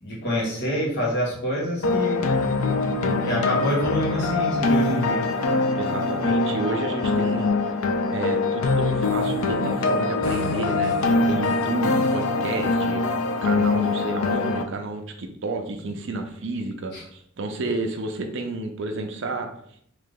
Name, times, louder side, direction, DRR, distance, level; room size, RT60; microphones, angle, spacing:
voice 1, 0.0-2.2 3.2-5.3 16.9-17.0, equal, 55° left, -3 dB, 1.3 m, -26 dB
sound 1, 1.8-14.6, left 3 dB, 90° left, 0.5 m, -23 dB
voice 2, 5.7-7.7 8.1-13.0 13.4-19.5, right 2 dB, 60° right, 5 dB, 0.6 m, -31 dB
3.3 x 2.8 x 3.8 m, 0.65 s
head